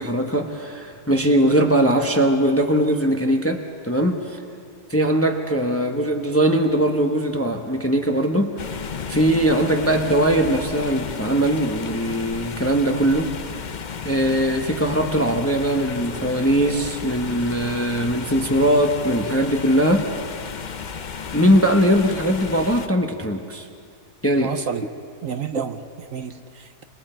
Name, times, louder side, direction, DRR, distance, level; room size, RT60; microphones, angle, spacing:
voice 1, 0.0-4.4 4.9-8.5 9.1-13.3 14.0-20.0 21.3-23.7 24.2-24.5, right 1 dB, 10° left, 3 dB, 0.9 m, -20 dB
sound 1, 8.6-22.9, left 6 dB, 50° left, 0.5 m, -33 dB
voice 2, 24.4-24.8 25.2-26.8, right 7 dB, 65° right, 8 dB, 1.0 m, -30 dB
27.5 x 23.0 x 4.5 m, 2.3 s
omnidirectional pair, 1.7 m